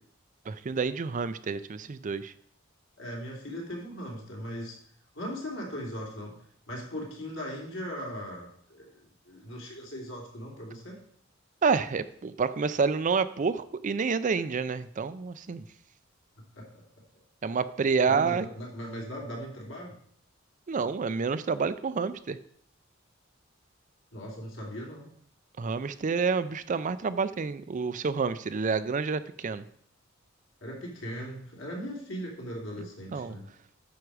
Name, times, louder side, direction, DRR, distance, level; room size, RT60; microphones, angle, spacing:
voice 1, 0.5-2.3 11.6-15.6 17.4-18.4 20.7-22.4 25.6-29.6 33.1-33.3, right 5 dB, 40° right, 14 dB, 0.4 m, -28 dB
voice 2, 3.0-4.8 5.1-6.4 6.7-11.0 16.5-16.8 18.1-20.0 24.1-25.1 30.6-33.5, equal, 70° left, -1 dB, 3.0 m, -39 dB
9.4 x 6.3 x 4.8 m, 0.64 s
head